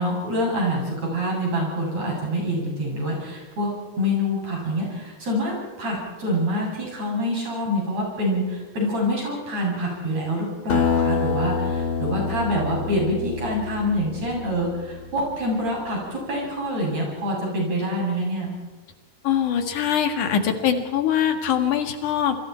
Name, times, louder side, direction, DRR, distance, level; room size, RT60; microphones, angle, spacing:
voice 1, 0.0-3.7 4.0-18.5, equal, 60° right, -2 dB, 9.1 m, -26 dB
Acoustic guitar, 10.7-15.5, left 5 dB, 60° left, 3.0 m, -27 dB
voice 2, 19.2-22.4, left 9 dB, 90° left, 6 dB, 3.4 m, -22 dB
27.5 x 23.0 x 4.6 m, 1.2 s
omnidirectional pair, 3.4 m